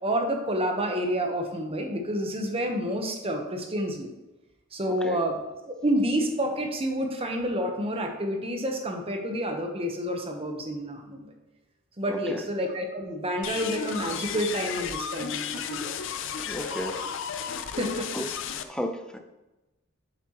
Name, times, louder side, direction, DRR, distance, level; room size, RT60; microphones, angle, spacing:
voice 1, 0.0-4.1 4.7-5.4 5.7-11.3 12.0-16.0 16.3-16.7 17.8-18.1, equal, 30° right, 3 dB, 1.0 m, -29 dB
voice 2, 4.9-5.2 12.1-12.4 16.5-17.0 17.4-17.8 18.1-18.3 18.7-19.2, equal, 5° left, 5 dB, 0.6 m, -34 dB
sound 1, 13.4-18.6, left 7 dB, 65° left, 0.5 m, -33 dB
7.4 x 7.0 x 3.0 m, 1.0 s
head